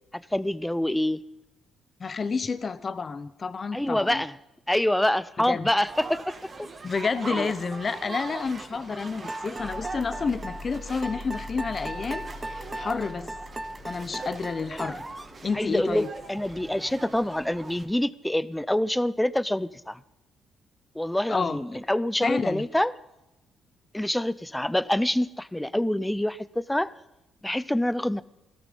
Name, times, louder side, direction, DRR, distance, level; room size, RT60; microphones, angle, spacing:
voice 1, 0.1-1.2 3.7-4.4 4.7-6.7 7.3-7.5 15.5-20.0 20.9-22.9 23.9-26.9 27.4-28.2, left 1 dB, 5° left, 18 dB, 0.6 m, -26 dB
voice 2, 2.0-4.2 5.5-5.7 6.8-13.3 13.8-15.0 15.4-16.1 21.3-21.8 22.2-22.6, left 5 dB, 40° left, 14 dB, 1.0 m, -30 dB
sound 1, 5.9-17.9, right 3 dB, 35° right, 2.3 m, -41 dB
sound 2, 9.3-15.4, right 2 dB, 20° right, 1.5 m, -37 dB
sound 3, 9.6-17.3, left 2 dB, 65° left, 4.5 m, -45 dB
17.0 x 13.5 x 5.4 m, 0.96 s
cardioid pair, 90°, 0 cm